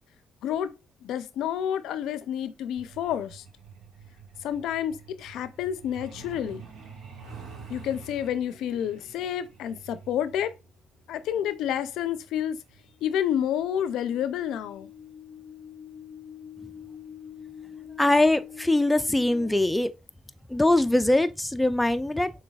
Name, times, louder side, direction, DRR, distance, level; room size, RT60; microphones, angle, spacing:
voice 1, 0.4-0.7 1.0-3.4 4.4-6.6 7.7-10.5 11.1-12.6 13.0-14.9, left 10 dB, 85° left, 0.4 m, -29 dB
Truck, 2.8-15.1 16.3-16.5 16.8-17.0 17.4-17.7 18.0-18.1 18.6-18.7, right 5 dB, 85° right, 2.2 m, -48 dB
sound 1, 8.0-10.6 12.8-19.5, left 8 dB, 50° left, 0.6 m, -47 dB
voice 2, 18.0-19.9 20.5-22.3, left 1 dB, 10° left, 0.4 m, -22 dB
6.3 x 3.4 x 2.3 m
cardioid pair, 90°, 0 cm